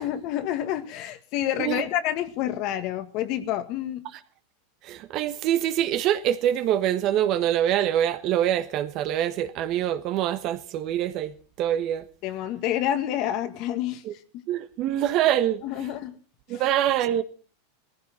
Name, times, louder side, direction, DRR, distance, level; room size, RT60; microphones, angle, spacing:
voice 1, 0.0-4.0 12.2-14.0 15.6-16.1 16.5-16.6, left 11 dB, 50° left, 1.7 m, -28 dB
voice 2, 4.8-12.0 14.0-14.1 14.5-15.9 16.5-17.2, right 11 dB, 45° right, 1.3 m, -25 dB
18.0 x 15.0 x 4.4 m
hypercardioid pair, 115°, 0 cm